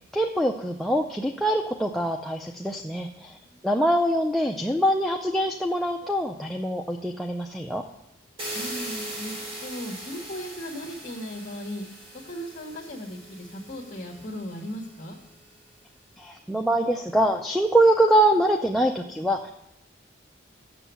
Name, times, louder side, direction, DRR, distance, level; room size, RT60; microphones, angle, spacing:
voice 1, 0.1-3.4 3.6-7.9 16.2-19.5, right 1 dB, ahead, 1 dB, 0.4 m, -24 dB
voice 2, 3.1-3.7 8.5-11.8 12.2-15.2, equal, 40° left, -4 dB, 1.3 m, -37 dB
sound 1, 8.4-15.2, right 1 dB, 30° right, 2.4 m, -40 dB
7.5 x 7.0 x 8.1 m, 0.82 s
head